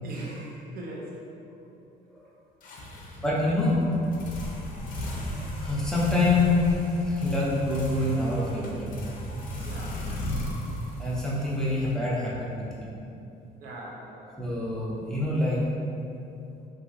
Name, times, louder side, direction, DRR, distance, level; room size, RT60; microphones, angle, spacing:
voice 1, 0.0-1.2 2.8-2.9 9.6-10.0 13.6-14.3, right 1 dB, 60° right, -3 dB, 0.6 m, -40 dB
sound 1, 2.6-12.4, left 1 dB, 55° left, 0.5 m, -36 dB
voice 2, 3.2-4.1 5.3-8.8 11.0-13.0 14.4-15.6, left 2 dB, 5° left, -7 dB, 0.6 m, -26 dB
2.9 x 2.6 x 2.5 m, 2.7 s
cardioid pair, 110°, 17 cm